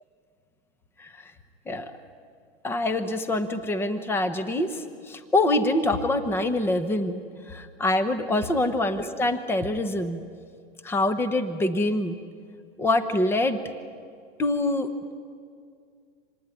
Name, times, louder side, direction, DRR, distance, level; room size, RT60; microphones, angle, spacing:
voice 1, 1.0-1.3 1.7-1.9 2.6-10.2 10.8-12.2 12.8-13.6 14.4-15.1, left 2 dB, 5° left, 10 dB, 1.0 m, -25 dB
26.0 x 19.5 x 9.8 m, 2.2 s
hypercardioid pair, 150°, 31 cm